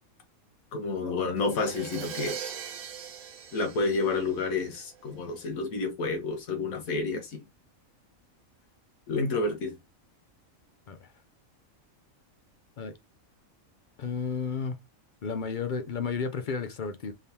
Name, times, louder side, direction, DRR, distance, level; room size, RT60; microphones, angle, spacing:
voice 1, 0.7-2.4 3.5-7.4 9.1-9.7, left 3 dB, 85° left, 1.5 m, -29 dB
Crash cymbal, 1.4-5.1, right 8 dB, 70° right, 1.1 m, -41 dB
voice 2, 14.0-14.8 15.2-17.1, left 5 dB, 60° left, 0.5 m, -32 dB
3.8 x 3.4 x 2.8 m
omnidirectional pair, 1.4 m